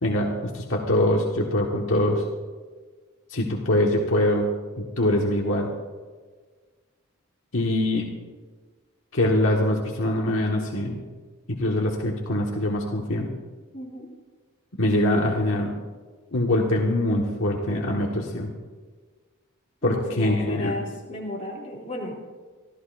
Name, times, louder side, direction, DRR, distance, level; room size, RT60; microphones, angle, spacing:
voice 1, 0.0-2.2 3.3-4.5 4.8-5.7 7.5-8.1 9.1-11.0 11.5-13.3 14.8-15.7 16.3-18.5 19.8-20.7, left 1 dB, 65° left, -1 dB, 1.5 m, -23 dB
voice 2, 13.7-14.1 19.8-22.2, left 1 dB, 30° left, -3 dB, 3.0 m, -34 dB
26.0 x 14.0 x 2.6 m, 1.4 s
head